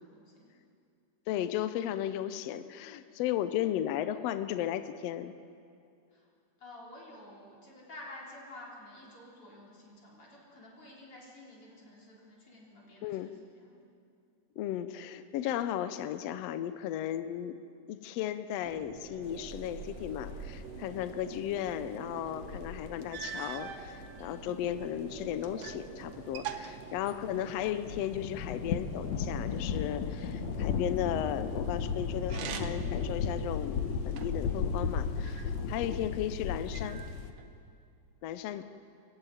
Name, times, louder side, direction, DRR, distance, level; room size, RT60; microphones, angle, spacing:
voice 1, 0.1-0.5 6.1-6.3 6.6-13.8 21.1-21.5 24.2-24.6 33.5-33.8 38.5-38.6, left 1 dB, 40° left, -3 dB, 5.0 m, -51 dB
voice 2, 1.3-5.3 13.0-13.3 14.6-17.6 17.9-37.0 38.2-38.6, left 11 dB, 85° left, 11 dB, 1.4 m, -35 dB
sound 1, 18.6-33.5, right 9 dB, 90° right, 1.3 m, -47 dB
sound 2, 19.2-37.3, left 6 dB, 65° left, 2.2 m, -36 dB
sound 3, 22.5-22.6 23.1-23.9 24.6-25.9 26.1-27.7 32.2-33.0 33.5-34.5 35.2-36.0 36.7-37.5, right 8 dB, 70° right, 1.5 m, -43 dB
25.0 x 15.0 x 9.3 m, 2.5 s
omnidirectional pair, 3.8 m